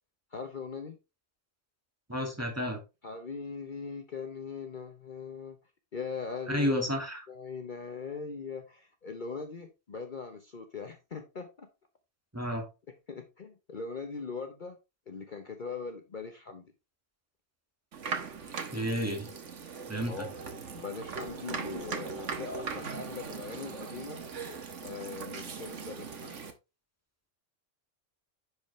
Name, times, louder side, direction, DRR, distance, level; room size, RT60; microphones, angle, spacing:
voice 1, 0.3-1.0 3.0-5.6 5.9-6.9 7.3-11.7 13.1-14.8 15.1-16.6 20.1-20.4 20.7-24.2 24.8-26.5, left 5 dB, 45° left, 5 dB, 1.1 m, -40 dB
voice 2, 2.1-2.8 6.5-7.2 12.3-12.6 18.7-19.3 19.9-20.1, equal, 10° right, 1 dB, 2.1 m, -30 dB
sound 1, 17.9-26.5, right 5 dB, 75° right, 1.5 m, -39 dB
10.0 x 4.9 x 3.2 m, 0.26 s
omnidirectional pair, 1.3 m